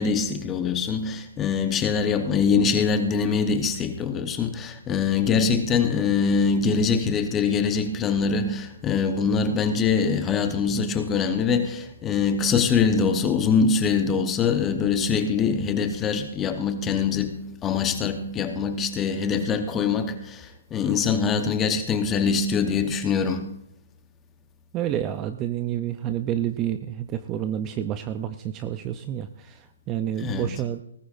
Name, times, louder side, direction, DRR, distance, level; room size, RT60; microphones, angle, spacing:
voice 1, 0.0-23.5 30.2-30.5, left 5 dB, 10° left, 7 dB, 0.9 m, -23 dB
voice 2, 24.7-30.8, right 11 dB, 15° right, 10 dB, 0.4 m, -29 dB
19.0 x 15.5 x 2.5 m, 0.75 s
hypercardioid pair, 170°, 0 cm